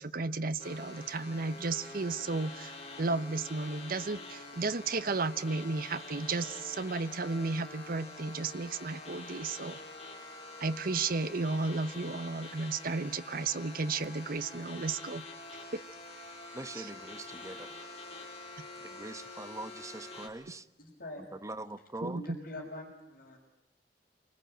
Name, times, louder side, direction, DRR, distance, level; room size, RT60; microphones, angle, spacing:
voice 1, 0.0-9.8 10.6-15.2 15.7-15.8 16.7-16.9 22.0-22.4, right 3 dB, 55° right, 0.9 m, -33 dB
sound 1, 0.6-20.3, left 2 dB, 40° left, 4.8 m, -46 dB
voice 2, 16.5-17.7 18.8-20.6 21.3-22.2, right 2 dB, 20° right, 1.1 m, -43 dB
voice 3, 20.8-21.2 22.2-23.4, left 1 dB, 55° left, 6.0 m, -44 dB
28.5 x 20.5 x 9.0 m
head